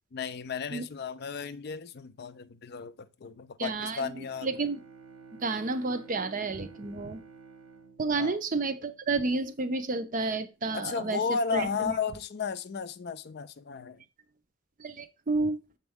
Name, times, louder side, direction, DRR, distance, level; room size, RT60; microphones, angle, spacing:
voice 1, 0.1-4.5 8.1-8.4 10.7-14.0, left 5 dB, 50° left, 0.4 m, -34 dB
voice 2, 3.6-4.1 4.4-4.8 5.4-7.2 8.0-11.2 11.5-11.9 14.8-15.6, right 3 dB, 35° right, 0.5 m, -30 dB
Bowed string instrument, 4.1-9.3, right 5 dB, 85° right, 1.2 m, -52 dB
7.1 x 4.3 x 3.5 m
head